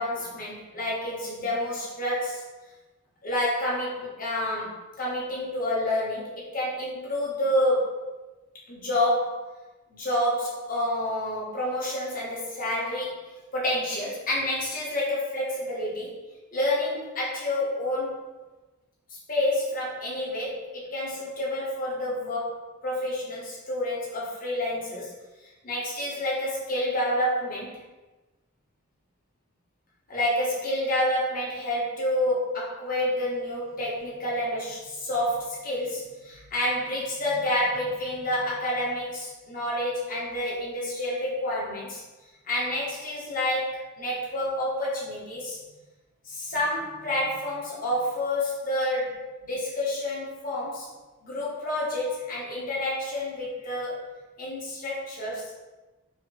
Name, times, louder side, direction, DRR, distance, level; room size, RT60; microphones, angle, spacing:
voice 1, 0.0-2.4 3.2-8.1 8.7-9.5 9.9-16.2 16.5-18.2 19.1-25.1 25.4-27.8 30.1-42.0 42.4-45.6 46.2-50.9 51.2-54.1 54.4-55.6, left 1 dB, 40° left, -5 dB, 0.9 m, -29 dB
4.2 x 2.5 x 2.4 m, 1.2 s
head